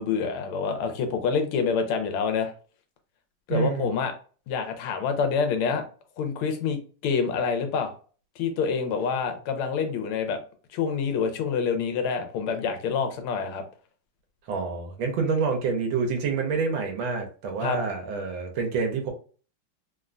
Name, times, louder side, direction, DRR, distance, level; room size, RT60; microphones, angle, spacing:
voice 1, 0.0-2.5 3.5-4.1 4.5-5.8 6.2-7.9 8.4-10.4 10.7-13.6 17.6-17.8, left 6 dB, 85° left, 6 dB, 1.5 m, -27 dB
voice 2, 3.5-3.9 14.5-19.1, right 5 dB, 75° right, 3 dB, 1.4 m, -27 dB
3.6 x 2.1 x 2.4 m, 0.39 s
omnidirectional pair, 2.3 m